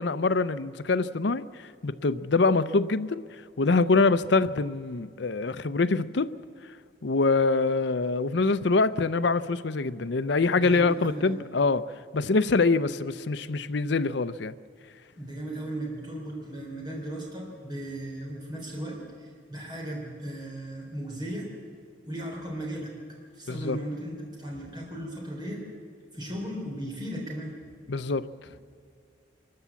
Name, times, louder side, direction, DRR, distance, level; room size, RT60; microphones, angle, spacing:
voice 1, 0.0-1.4 1.8-3.2 3.6-6.4 7.0-11.8 12.1-14.5 23.5-23.8 27.9-28.3, left 3 dB, 65° left, 0.6 m, -24 dB
voice 2, 10.5-11.4 15.2-21.5 22.0-22.9 23.3-25.6 26.1-27.7, right 1 dB, 20° right, 3.6 m, -36 dB
24.0 x 13.5 x 8.3 m
head